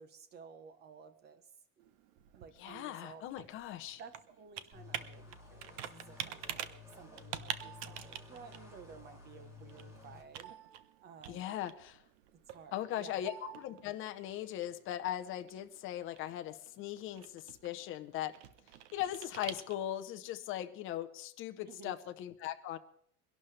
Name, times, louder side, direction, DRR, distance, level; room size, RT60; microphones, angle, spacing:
voice 1, 0.0-1.5 1.8-2.0 2.3-3.5 4.0-10.6 11.0-11.5 12.5-13.2 21.7-22.0, right 6 dB, 25° right, 10 dB, 1.1 m, -54 dB
Computer keyboard, 1.8-20.1, right 11 dB, 55° right, 1.0 m, -48 dB
voice 2, 2.6-4.0 11.3-12.0 12.7-18.3 18.9-22.8, left 12 dB, 30° left, 8 dB, 0.8 m, -39 dB
sound 1, 4.7-10.2, left 4 dB, 5° right, 2.1 m, -53 dB
23.0 x 11.5 x 3.3 m, 0.68 s
cardioid pair, 170°, 42 cm